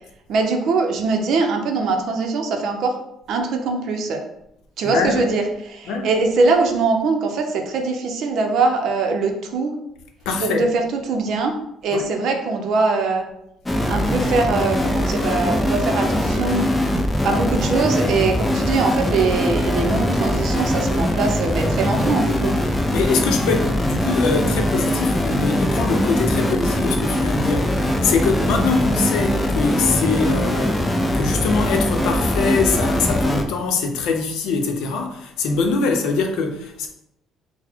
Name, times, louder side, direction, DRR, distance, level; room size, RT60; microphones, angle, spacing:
voice 1, 0.3-2.9 3.3-4.2 4.8-9.7 10.4-11.5 11.8-13.3 13.9-16.7 17.2-22.5, right 3 dB, 55° right, 0.6 m, -22 dB
voice 2, 4.9-5.3 5.9-6.1 10.3-10.6 11.9-12.1 22.9-30.8 31.1-36.9, left 4 dB, 80° left, 0.6 m, -23 dB
sound 1, 13.7-33.4, left 1 dB, 10° left, 0.4 m, -21 dB
4.0 x 2.1 x 4.4 m
cardioid pair, 165°, 0 cm